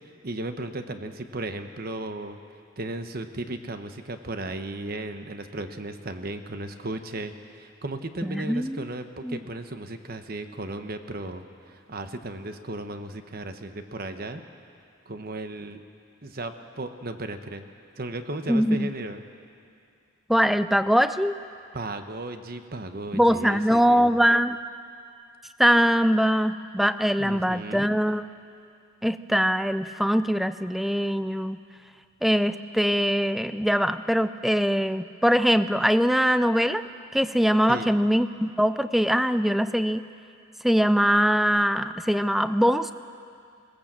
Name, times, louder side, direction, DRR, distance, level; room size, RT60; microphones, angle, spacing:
voice 1, 0.2-2.4 2.8-14.4 15.1-15.8 16.2-17.6 18.0-19.2 21.7-24.2 27.2-27.9 37.7-38.0, right 2 dB, 45° right, 8 dB, 1.1 m, -35 dB
voice 2, 8.2-8.8 9.2-9.4 18.5-18.9 20.3-21.4 23.1-24.6 25.6-28.2 29.0-31.6 32.2-36.8 37.1-40.0 40.6-42.9, equal, ahead, 12 dB, 0.4 m, -22 dB
20.5 x 18.5 x 7.5 m, 2.4 s
head